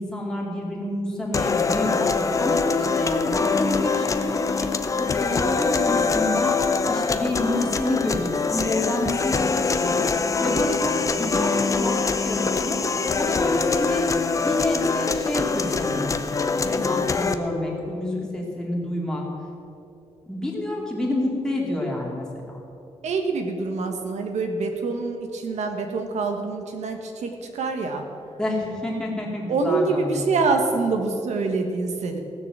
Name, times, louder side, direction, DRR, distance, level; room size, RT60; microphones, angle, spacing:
voice 1, 0.0-2.1 2.4-4.7 5.0-12.0 12.2-12.8 13.1-14.0 14.3-16.2 16.5-19.2 20.3-22.6 28.4-30.5, left 1 dB, 5° left, -3 dB, 2.4 m, -28 dB
sound 1, 1.3-17.3, left 4 dB, 30° left, 0.6 m, -24 dB
voice 2, 23.0-28.0 29.5-32.2, right 3 dB, 80° right, 4 dB, 1.5 m, -25 dB
16.0 x 6.9 x 7.6 m, 2.7 s
wide cardioid pair, 175°, 12 cm